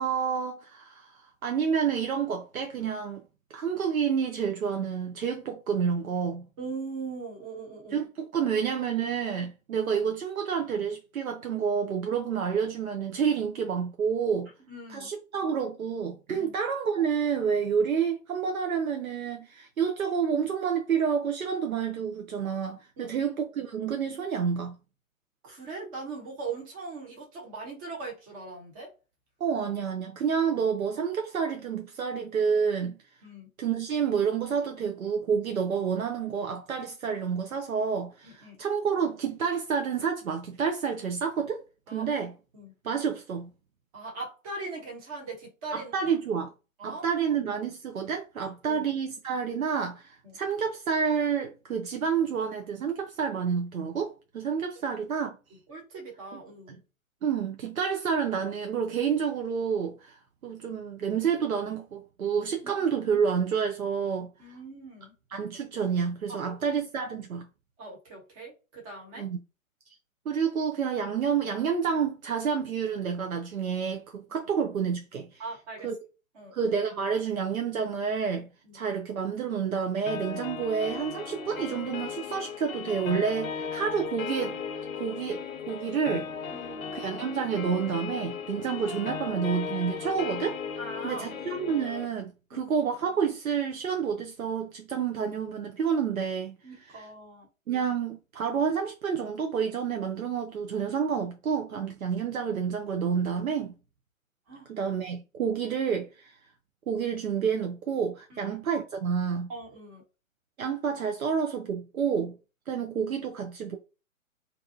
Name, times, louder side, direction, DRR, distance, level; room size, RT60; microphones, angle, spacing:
voice 1, 0.0-3.2 3.5-6.4 7.9-14.5 14.9-24.7 29.4-33.0 33.6-41.6 41.9-42.3 42.8-43.5 45.7-46.5 46.8-55.4 56.3-56.4 56.7-56.8 57.2-64.5 65.3-67.4 69.2-69.4 70.3-75.4 75.8-75.9 76.5-78.5 78.7-84.6 85.0-85.4 85.7-86.5 86.9-90.6 91.0-96.5 96.8-97.1 97.7-103.7 104.7-106.4 106.9-109.5 110.6-112.3 112.7-113.8, right 6 dB, 80° right, 0.6 m, -29 dB
voice 2, 6.6-8.0 14.7-15.1 16.4-16.5 23.0-23.2 25.4-28.9 33.2-33.5 38.2-38.6 41.9-42.1 42.5-42.7 43.9-45.9 46.8-47.0 48.4-48.8 50.2-50.4 55.7-56.8 62.6-62.7 64.4-65.1 66.3-66.4 67.8-69.3 75.4-75.9 76.3-76.6 78.6-78.8 86.5-87.0 90.8-91.4 92.5-92.7 96.6-97.5 104.5-104.7 108.4-108.5 109.5-110.0, right 3 dB, 25° right, 1.0 m, -40 dB
sound 1, 80.1-92.1, left 6 dB, 75° left, 0.5 m, -37 dB
2.7 x 2.2 x 2.6 m
figure-of-eight pair, 135°, 41 cm